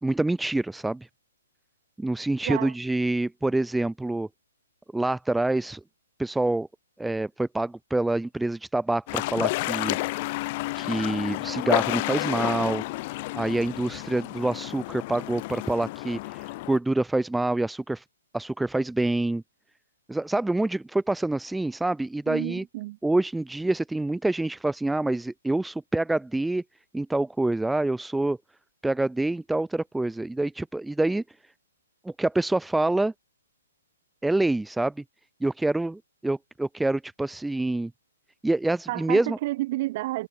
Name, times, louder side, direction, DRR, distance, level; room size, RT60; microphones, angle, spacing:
voice 1, 0.0-1.1 2.0-4.3 4.9-5.8 6.2-6.7 7.0-10.0 10.8-12.8 13.3-18.0 18.3-19.4 20.1-22.6 23.0-26.6 26.9-28.4 28.8-31.2 32.0-33.1 34.2-34.9 35.4-37.9 38.4-39.4, right 2 dB, 5° right, 0.8 m, -26 dB
sound 1, 9.1-16.8, left 21 dB, 40° left, 0.5 m, -30 dB
voice 2, 22.3-23.0 38.9-40.3, right 18 dB, 40° right, 3.3 m, -30 dB
hypercardioid pair, 130°, 0 cm